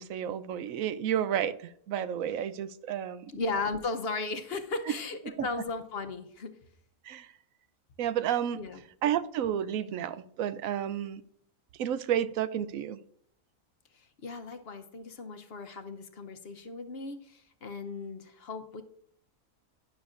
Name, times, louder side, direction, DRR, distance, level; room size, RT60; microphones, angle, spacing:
voice 1, 0.0-3.3 4.9-5.0 5.3-5.5 7.0-7.3 8.0-8.6 9.0-11.2 11.8-13.0, right 10 dB, 75° right, 1.0 m, -31 dB
voice 2, 3.3-6.5 8.5-8.8 14.2-18.8, left 3 dB, 50° left, 0.9 m, -36 dB
12.5 x 10.5 x 2.5 m
omnidirectional pair, 1.5 m